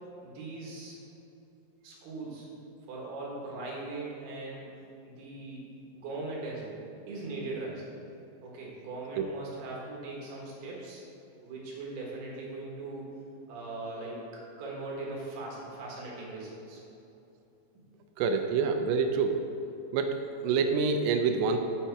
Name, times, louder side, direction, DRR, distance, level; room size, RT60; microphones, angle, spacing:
voice 1, 0.2-1.0 1.8-2.5 2.9-4.7 5.0-5.6 5.9-6.8 7.1-7.9 8.4-11.0 11.4-13.1 13.5-16.8, right 2 dB, 70° right, -4 dB, 3.4 m, -40 dB
voice 2, 18.2-19.4 19.9-21.6, right 5 dB, 90° right, 5 dB, 2.8 m, -27 dB
8.9 x 7.3 x 4.6 m, 2.9 s
omnidirectional pair, 4.9 m